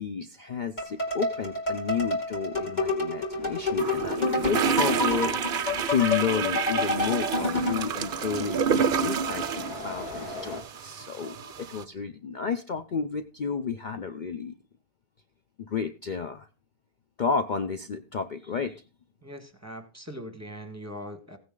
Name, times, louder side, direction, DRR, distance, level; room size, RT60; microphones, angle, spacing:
voice 1, 0.0-14.5 15.6-16.5 17.2-18.8, left 6 dB, 60° left, 9 dB, 0.4 m, -31 dB
sound 1, 0.8-7.9, left 2 dB, 30° left, 2.6 m, -29 dB
sound 2, 3.3-10.6, left 1 dB, 85° left, 2.5 m, -42 dB
sound 3, 3.8-11.8, right 7 dB, 55° right, 0.6 m, -29 dB
voice 2, 19.2-21.4, equal, 10° right, 9 dB, 1.4 m, -41 dB
15.5 x 9.6 x 3.8 m, 0.34 s
omnidirectional pair, 1.6 m